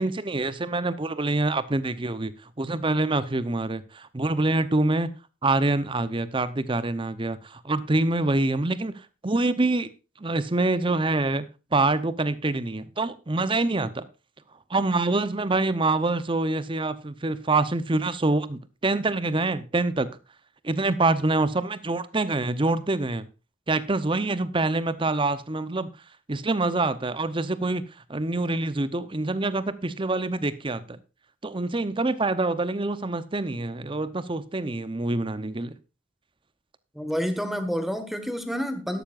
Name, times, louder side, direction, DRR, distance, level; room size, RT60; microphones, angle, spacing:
voice 1, 0.0-2.3 2.6-5.1 5.4-9.9 10.2-11.4 11.7-14.1 14.7-20.1 20.6-23.3 23.7-25.9 26.3-27.8 28.1-31.0 31.4-35.7, right 2 dB, 25° right, 0.7 m, -25 dB
voice 2, 36.9-39.0, equal, ahead, 1.3 m, -29 dB
12.5 x 12.0 x 2.5 m
head